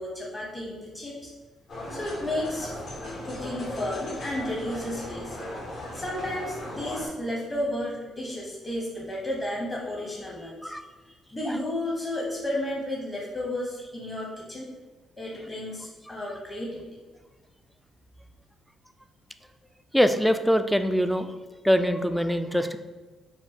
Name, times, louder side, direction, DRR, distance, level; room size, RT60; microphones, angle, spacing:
voice 1, 0.0-1.3 1.9-2.7 3.2-5.4 5.9-10.7 11.0-14.7 15.2-16.8, left 1 dB, 25° left, -2 dB, 0.9 m, -32 dB
sound 1, 1.7-7.1, left 1 dB, 65° left, 1.4 m, -37 dB
voice 2, 19.9-21.3 21.6-22.8, equal, ahead, 9 dB, 0.3 m, -23 dB
5.3 x 2.3 x 4.2 m, 1.3 s
cardioid pair, 90°, 0 cm